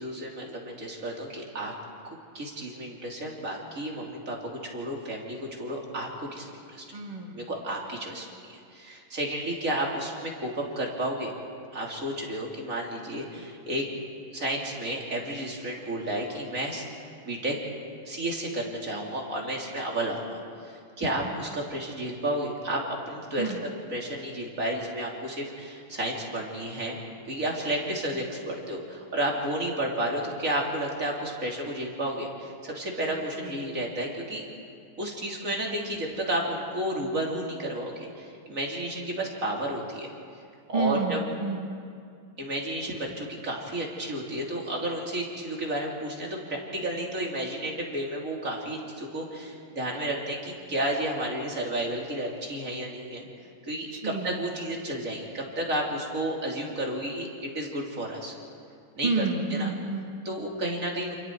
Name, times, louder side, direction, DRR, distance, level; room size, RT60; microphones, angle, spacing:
voice 1, 0.0-1.7 2.3-4.4 4.6-6.4 6.7-6.8 7.3-11.3 11.7-13.9 14.3-16.8 17.2-17.6 18.1-20.4 21.0-27.0 27.3-34.4 35.0-40.1 40.7-41.2 42.4-53.3 53.7-58.3 59.0-59.1 59.5-59.7 60.2-61.1, right 1 dB, 25° right, -1 dB, 3.1 m, -32 dB
voice 2, 6.9-7.5 23.4-23.6 33.4-33.7 40.7-41.7 53.9-54.5 59.0-60.1, right 3 dB, 65° right, 1 dB, 0.4 m, -30 dB
29.0 x 28.0 x 4.7 m, 2.3 s
omnidirectional pair, 4.0 m